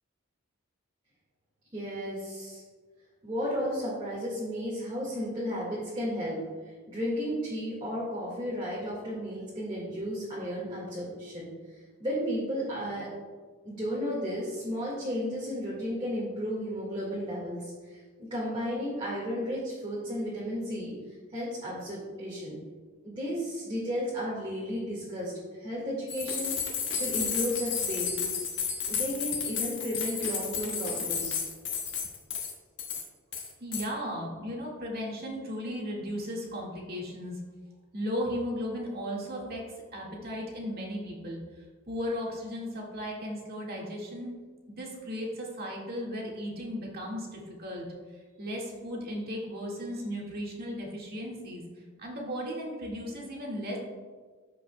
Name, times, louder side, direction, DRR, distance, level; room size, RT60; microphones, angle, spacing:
voice 1, 1.7-2.6 3.2-6.4 6.6-13.1 13.7-20.9 21.3-22.5 23.0-26.6 26.9-28.5 28.9-31.4, equal, 25° right, -7 dB, 1.8 m, -33 dB
sound 1, 26.1-32.5 32.8-33.0 33.3-33.8, left 6 dB, 60° left, 1.3 m, -32 dB
voice 2, 33.6-37.4 37.9-39.6 39.9-44.3 44.7-47.8 48.4-51.6 52.0-53.8, equal, 50° right, -2 dB, 1.8 m, -36 dB
14.0 x 5.3 x 2.2 m, 1.5 s
head